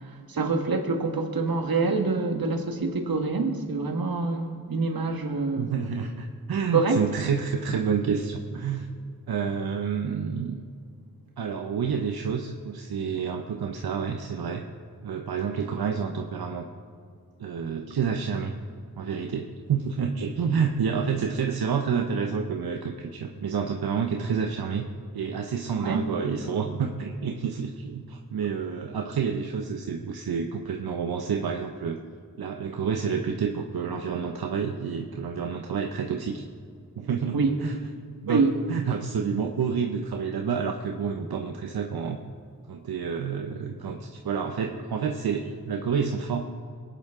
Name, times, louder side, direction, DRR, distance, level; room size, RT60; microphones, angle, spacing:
voice 1, 0.3-5.7 6.7-7.0 25.7-26.0 37.3-37.5 38.3-38.5, right 3 dB, 70° right, 5 dB, 1.5 m, -26 dB
voice 2, 5.6-8.9 9.3-10.6 11.4-14.7 15.0-16.6 17.4-18.5 19.0-24.9 25.1-32.0 32.4-36.4 37.0-37.8 38.2-42.2 42.7-46.4, right 6 dB, 90° right, 3 dB, 0.8 m, -29 dB
20.0 x 9.3 x 3.6 m, 2.2 s
cardioid pair, 45°, 36 cm